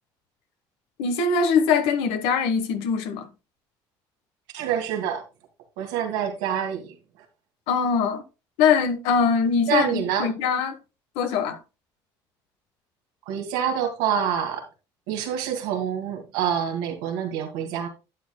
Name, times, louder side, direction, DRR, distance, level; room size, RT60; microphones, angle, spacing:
voice 1, 1.0-3.3 7.7-8.2 8.6-10.8 11.1-11.6, left 6 dB, 80° left, 1.2 m, -22 dB
voice 2, 4.5-5.2 5.8-6.9 9.7-10.3 13.3-14.7 15.1-17.9, right 8 dB, 90° right, 2.2 m, -26 dB
11.0 x 8.6 x 2.2 m
supercardioid pair, 85°, 10 cm